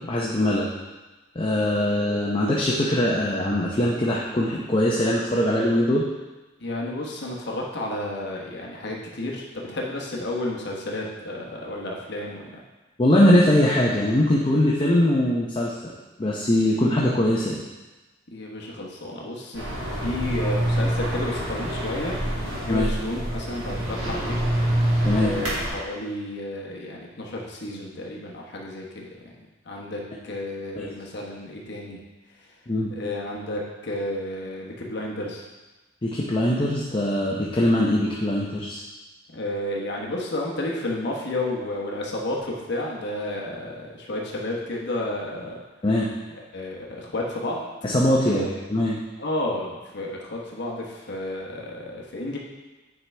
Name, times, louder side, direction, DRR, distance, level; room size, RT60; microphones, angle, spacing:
voice 1, 0.1-0.7 1.4-6.1 13.0-15.9 16.2-17.6 22.7-22.9 25.0-25.3 30.8-30.9 32.7-32.9 36.0-38.8 45.8-46.1 47.8-49.0, left 1 dB, 25° left, -4 dB, 0.7 m, -21 dB
voice 2, 6.6-12.5 18.3-24.4 25.1-32.0 32.9-35.4 39.3-45.6 46.5-47.6 48.3-48.5 49.2-52.4, left 1 dB, 60° left, -2 dB, 1.1 m, -32 dB
sound 1, 19.5-25.7, right 1 dB, 85° right, 2.4 m, -26 dB
8.8 x 4.7 x 3.3 m, 1.2 s
head